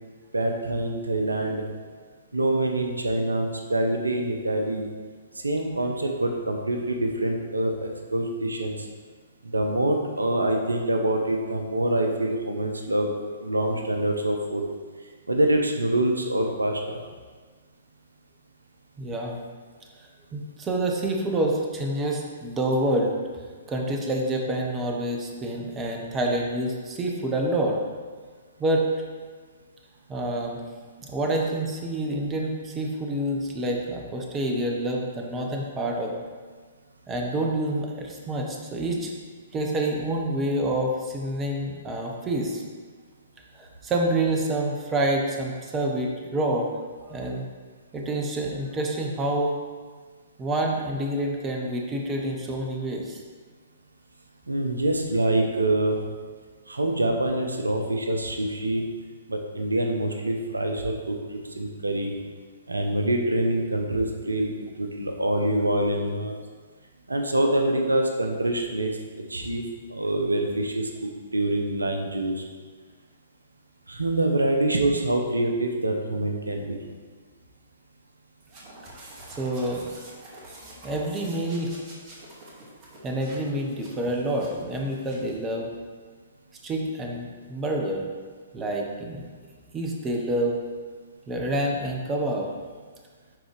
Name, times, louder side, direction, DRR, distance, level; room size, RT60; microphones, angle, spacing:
voice 1, 0.3-1.6 2.3-4.9 5.3-8.9 9.4-14.6 15.3-17.0 54.5-56.0 56.7-58.9 59.3-62.1 62.7-64.5 64.8-66.3 67.1-68.9 69.3-69.6 69.9-72.4 73.9-76.8, right 1 dB, 85° right, 3 dB, 0.7 m, -25 dB
voice 2, 19.0-19.4 20.3-23.2 23.7-27.8 28.6-28.9 30.1-30.6 31.0-36.1 37.1-39.1 39.5-42.6 43.5-46.7 47.0-47.4 47.9-49.6 50.4-53.2 79.4-79.9 80.8-81.8 83.0-85.7 86.6-88.1 88.5-89.3 89.7-90.6 91.3-92.5, right 1 dB, 20° right, 0 dB, 1.0 m, -27 dB
sound 1, 78.4-85.4, right 1 dB, 35° right, 1.9 m, -46 dB
11.0 x 4.1 x 3.3 m, 1.5 s
figure-of-eight pair, 120°, 0 cm